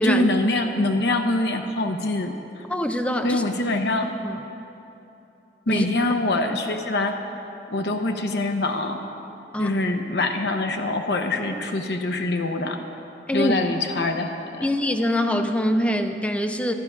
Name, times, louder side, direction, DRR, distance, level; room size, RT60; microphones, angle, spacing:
voice 1, 0.0-2.6 3.2-4.1 5.7-7.2 7.7-9.0 9.6-12.8 13.3-14.7, left 2 dB, 65° left, 4 dB, 0.7 m, -24 dB
voice 2, 2.7-3.4 4.2-4.4 5.7-5.9 9.5-9.8 13.3-13.5 14.6-16.7, equal, 5° left, 5 dB, 0.6 m, -23 dB
13.0 x 10.0 x 5.9 m, 2.9 s
head